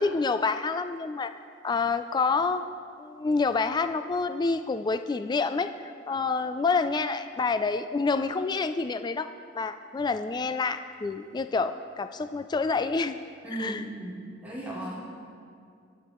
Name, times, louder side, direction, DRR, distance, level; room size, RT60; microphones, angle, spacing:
voice 1, 0.0-1.3 1.6-2.6 3.0-5.7 6.1-9.3 9.5-13.2 13.5-13.8, left 4 dB, 25° left, 10 dB, 0.3 m, -27 dB
voice 2, 13.4-15.1, right 1 dB, 10° right, -9 dB, 3.4 m, -36 dB
22.0 x 9.0 x 3.1 m, 2.3 s
head